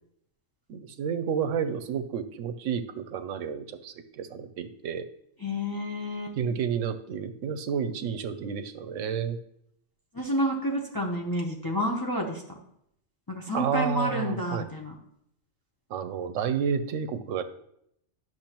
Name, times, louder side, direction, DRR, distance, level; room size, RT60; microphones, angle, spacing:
voice 1, 0.7-5.0 6.4-9.4 13.5-14.7 15.9-17.4, right 7 dB, 75° right, 11 dB, 0.9 m, -30 dB
voice 2, 5.4-6.4 10.1-12.4 13.3-14.9, equal, 20° left, -1 dB, 0.8 m, -29 dB
10.5 x 6.2 x 3.0 m, 0.74 s
omnidirectional pair, 1.3 m